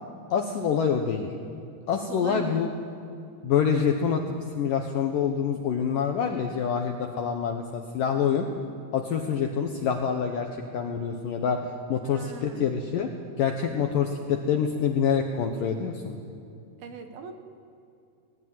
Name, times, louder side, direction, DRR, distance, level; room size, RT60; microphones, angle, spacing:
voice 1, 0.3-1.3 1.9-2.7 3.4-8.5 8.9-10.5 10.7-13.1 13.4-16.2, left 7 dB, 70° left, 4 dB, 2.1 m, -26 dB
voice 2, 1.9-2.6 12.0-12.8 16.8-17.3, right 5 dB, 65° right, 6 dB, 2.6 m, -40 dB
20.0 x 18.5 x 9.4 m, 2.6 s
omnidirectional pair, 5.2 m